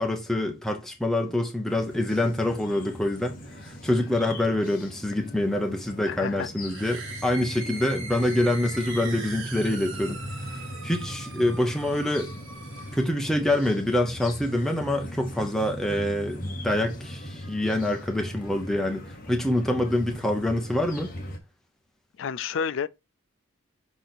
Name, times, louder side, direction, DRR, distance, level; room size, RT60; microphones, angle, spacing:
voice 1, 0.0-12.3 12.9-21.1, left 1 dB, ahead, 0.7 m, -26 dB
sound 1, 1.7-21.4, equal, 40° left, 1.3 m, -39 dB
voice 2, 6.1-6.5 22.2-22.9, left 6 dB, 60° left, 0.4 m, -30 dB
sound 2, 6.6-13.2, right 3 dB, 60° right, 1.6 m, -40 dB
6.1 x 3.9 x 4.1 m
head